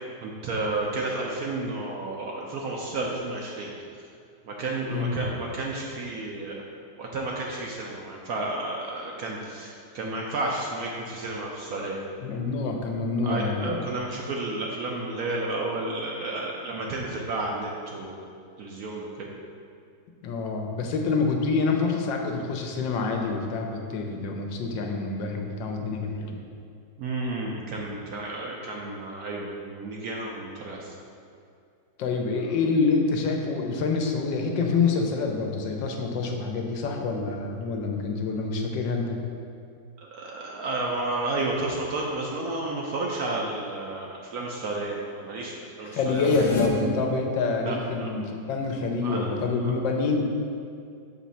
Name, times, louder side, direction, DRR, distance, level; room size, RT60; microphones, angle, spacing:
voice 1, 0.2-3.7 4.4-6.5 7.0-12.0 13.2-18.2 18.6-19.1 27.0-30.9 40.0-46.5 47.6-48.1 49.0-49.3 49.6-49.7, right 2 dB, 65° right, -2 dB, 0.9 m, -31 dB
voice 2, 4.9-5.2 12.2-13.9 20.2-26.4 32.0-39.2 45.9-50.2, left 4 dB, 80° left, 2 dB, 1.3 m, -27 dB
sound 1, 46.1-46.7, left 8 dB, 60° left, 0.9 m, -30 dB
6.5 x 3.1 x 5.6 m, 2.4 s
omnidirectional pair, 2.0 m